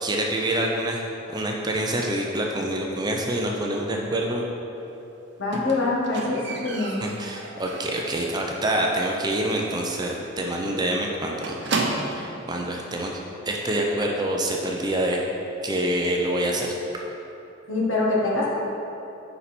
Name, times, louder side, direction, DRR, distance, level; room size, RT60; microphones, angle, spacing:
voice 1, 0.0-1.0 1.3-4.4 7.0-11.6 12.2-13.2 13.5-15.2 15.6-16.7, right 1 dB, 20° right, 0 dB, 0.5 m, -26 dB
voice 2, 5.4-7.0 17.7-18.5, left 2 dB, 65° left, -4 dB, 1.6 m, -24 dB
Squeak, 5.5-8.3 8.6-9.0 9.3-9.4 9.8-9.9 10.1-10.3 10.5-12.4 13.2-13.3, right 3 dB, 55° right, 0.7 m, -32 dB
9.6 x 4.2 x 4.2 m, 3.0 s
head